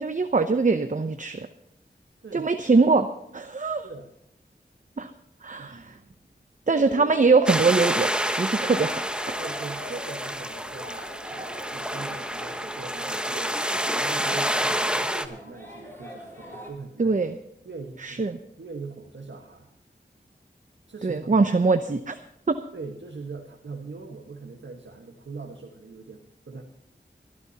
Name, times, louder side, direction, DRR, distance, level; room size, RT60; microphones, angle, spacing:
voice 1, 0.0-1.5 2.3-3.1 3.3-3.9 5.0-5.1 5.4-6.0 6.7-9.4 17.0-17.4 18.0-18.4 21.0-22.2 22.5-22.6, right 4 dB, 45° right, 9 dB, 0.8 m, -22 dB
voice 2, 5.5-5.9 6.7-7.1 9.4-17.2 17.6-19.7 20.9-21.5 22.7-26.6, right 4 dB, 85° right, 1 dB, 1.5 m, -41 dB
sound 1, 6.8-16.7, equal, 10° left, 7.0 m, -42 dB
sound 2, 7.5-15.3, equal, 5° right, 1.2 m, -28 dB
23.5 x 12.0 x 2.9 m, 0.79 s
cardioid pair, 40°, 19 cm